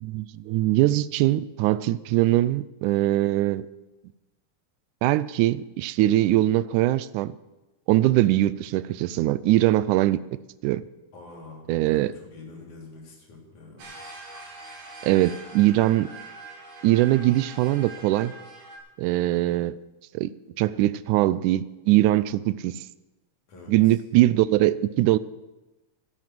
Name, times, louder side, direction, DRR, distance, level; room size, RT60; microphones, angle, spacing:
voice 1, 0.0-3.7 5.0-7.3 7.9-10.2 10.6-10.8 11.7-12.1 15.0-16.1 16.8-18.3 19.0-19.8 20.1-22.9 23.7-25.2, right 15 dB, 90° right, 17 dB, 2.1 m, -22 dB
voice 2, 11.1-13.9 23.5-24.0, left 2 dB, 75° left, 0 dB, 4.5 m, -46 dB
sound 1, 13.8-18.8, right 3 dB, 65° right, 3.4 m, -43 dB
11.0 x 11.0 x 7.8 m, 1.1 s
omnidirectional pair, 3.5 m